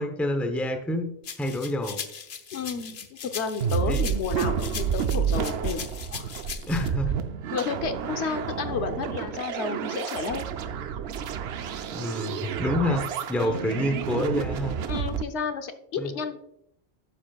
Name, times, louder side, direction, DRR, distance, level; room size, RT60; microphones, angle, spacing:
voice 1, 0.0-2.0 3.9-4.0 6.7-7.1 11.9-14.8 16.0-16.1, left 1 dB, ahead, 5 dB, 0.7 m, -28 dB
sound 1, 1.2-6.9, left 6 dB, 55° left, 0.9 m, -39 dB
voice 2, 2.5-5.8 6.1-6.3 6.7-6.8 7.5-10.4 13.4-13.7 14.9-16.4, left 5 dB, 85° left, 7 dB, 1.1 m, -32 dB
sound 2, 3.6-15.2, right 8 dB, 75° right, 0.8 m, -30 dB
12.0 x 7.4 x 2.3 m, 0.76 s
omnidirectional pair, 1.1 m